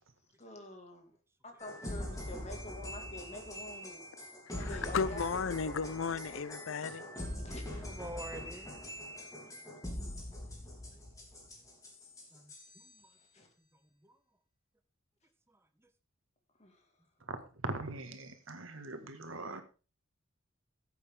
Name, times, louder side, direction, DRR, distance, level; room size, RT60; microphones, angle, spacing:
voice 1, 0.4-1.1 1.4-4.0 4.5-5.3 5.6-5.7 6.8-6.9 7.3-7.6 13.2-13.5 16.6-16.9, left 1 dB, 35° left, 2.2 m, -47 dB
sound 1, 1.6-12.9, left 1 dB, 15° left, 3.1 m, -43 dB
voice 2, 4.6-7.1, left 5 dB, 80° left, 0.6 m, -34 dB
voice 3, 7.7-8.8 10.4-10.5 10.9-11.0 12.3-13.1 14.0-14.2 15.5-15.9, right 1 dB, 10° right, 1.0 m, -48 dB
voice 4, 17.6-19.6, right 2 dB, 80° right, 1.8 m, -40 dB
15.5 x 8.2 x 3.7 m
head